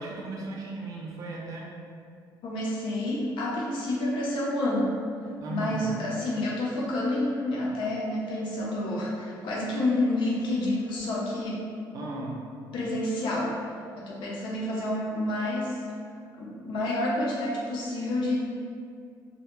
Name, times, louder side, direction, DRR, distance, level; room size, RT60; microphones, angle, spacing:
voice 1, 0.0-1.7 5.4-5.9 11.9-12.5, right 3 dB, 45° right, -2 dB, 0.4 m, -36 dB
voice 2, 2.4-4.9 5.5-11.7 12.7-13.6 14.0-15.8 16.4-18.4, left 1 dB, 75° left, -4 dB, 0.6 m, -29 dB
2.1 x 2.1 x 3.0 m, 2.3 s
cardioid pair, 135°, 8 cm